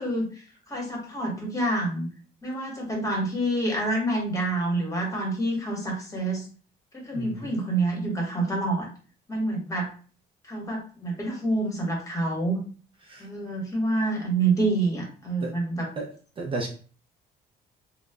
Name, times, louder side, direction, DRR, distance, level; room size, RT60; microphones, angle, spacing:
voice 1, 0.0-2.1 2.4-6.5 6.9-8.9 9.3-9.9 10.4-12.6 13.2-15.9, right 2 dB, 20° left, 1.1 m, -27 dB
voice 2, 7.1-7.5 13.0-13.3 15.4-15.5 16.0-16.1 16.4-16.7, right 3 dB, 30° right, 0.5 m, -33 dB
2.2 x 2.0 x 3.4 m
cardioid pair, 110°, 17 cm